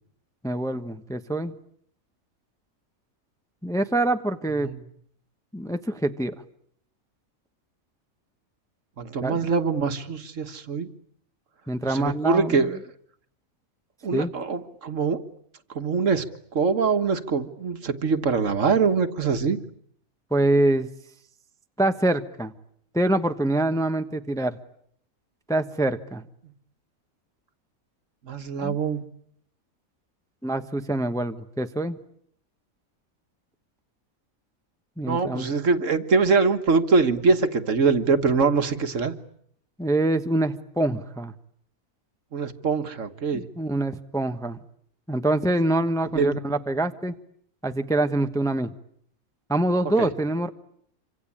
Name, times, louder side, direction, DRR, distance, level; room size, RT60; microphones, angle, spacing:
voice 1, 0.4-1.5 3.6-4.7 5.5-6.3 9.2-9.5 11.7-12.6 14.1-14.3 20.3-20.9 21.8-22.5 22.9-24.6 25.5-26.2 28.6-28.8 30.4-32.0 35.0-35.5 39.8-41.3 43.3-44.6 45.1-47.1 47.6-48.7 49.5-50.5, right 1 dB, 5° left, 8 dB, 0.9 m, -25 dB
voice 2, 9.0-10.9 11.8-12.8 14.0-15.2 15.7-16.2 16.5-19.6 28.2-29.0 35.0-39.1 42.3-43.4 46.1-46.4 50.0-50.1, right 4 dB, 60° right, 9 dB, 1.8 m, -23 dB
27.0 x 25.5 x 8.7 m, 0.67 s
omnidirectional pair, 1.5 m